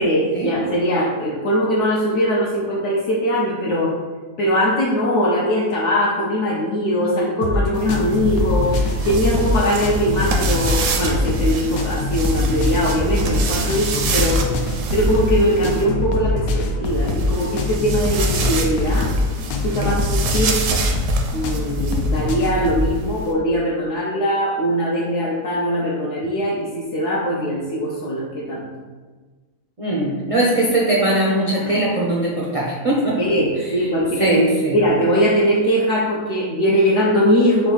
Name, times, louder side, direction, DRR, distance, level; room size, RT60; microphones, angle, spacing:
voice 1, 0.0-3.9 4.4-8.7 9.1-14.4 14.9-16.4 16.8-19.1 19.6-20.6 21.3-28.6 31.6-31.7 33.2-34.4 34.7-37.7, equal, 65° left, -5 dB, 0.9 m, -21 dB
sound 1, 7.4-22.9, left 2 dB, 90° left, 1.1 m, -23 dB
sound 2, 7.7-15.8 16.8-23.3, right 5 dB, 70° right, 0.9 m, -28 dB
voice 2, 29.8-33.2 33.6-33.9 34.2-34.8, right 1 dB, 50° right, -5 dB, 0.4 m, -20 dB
4.6 x 2.3 x 4.0 m, 1.4 s
omnidirectional pair, 1.5 m